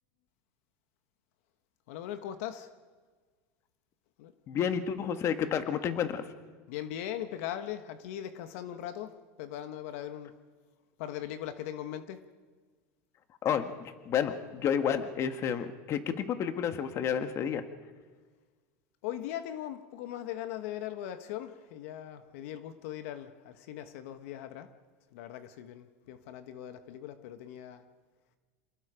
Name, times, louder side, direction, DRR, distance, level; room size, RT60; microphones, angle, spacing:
voice 1, 1.9-2.7 4.2-4.3 6.7-10.4 11.0-12.3 19.0-24.7 25.1-27.8, left 11 dB, 75° left, 1.3 m, -40 dB
voice 2, 4.5-6.2 13.4-13.7 14.0-17.6, left 8 dB, 40° left, 1.6 m, -30 dB
27.5 x 19.5 x 5.1 m
supercardioid pair, 130°, 8 cm